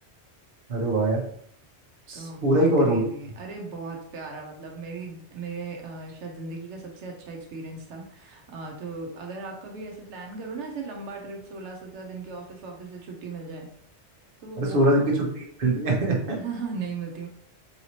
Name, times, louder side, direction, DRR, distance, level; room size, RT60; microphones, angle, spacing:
voice 1, 0.7-1.2 2.1-3.0 14.6-15.1 15.6-16.4, right 1 dB, 55° right, -1 dB, 1.0 m, -22 dB
voice 2, 2.1-13.7 14.4-15.1 16.3-17.3, right 4 dB, 85° right, 1 dB, 1.0 m, -37 dB
4.0 x 2.8 x 2.9 m, 0.63 s
omnidirectional pair, 1.2 m